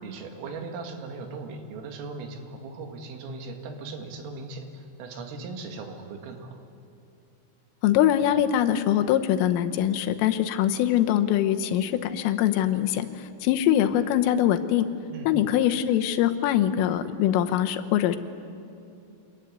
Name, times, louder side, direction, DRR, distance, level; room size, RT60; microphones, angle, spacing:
voice 1, 0.0-6.6 15.1-15.3, right 3 dB, 85° right, 4 dB, 4.7 m, -38 dB
voice 2, 7.8-13.1 13.4-14.9 15.3-18.2, left 11 dB, 85° left, 8 dB, 3.7 m, -23 dB
25.5 x 21.5 x 9.5 m, 2.6 s
omnidirectional pair, 5.7 m